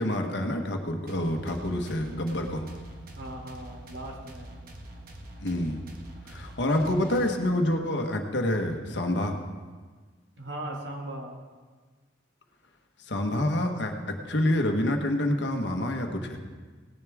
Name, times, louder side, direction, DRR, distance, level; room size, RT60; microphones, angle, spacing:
voice 1, 0.0-2.7 5.4-5.8 6.2-9.4 13.1-16.4, left 1 dB, 65° left, 4 dB, 1.2 m, -27 dB
sound 1, 1.1-7.8, right 1 dB, 50° right, 1.3 m, -45 dB
voice 2, 3.1-4.7 10.4-11.4, right 1 dB, 70° right, 0 dB, 2.1 m, -38 dB
18.0 x 10.5 x 3.5 m, 1.4 s
head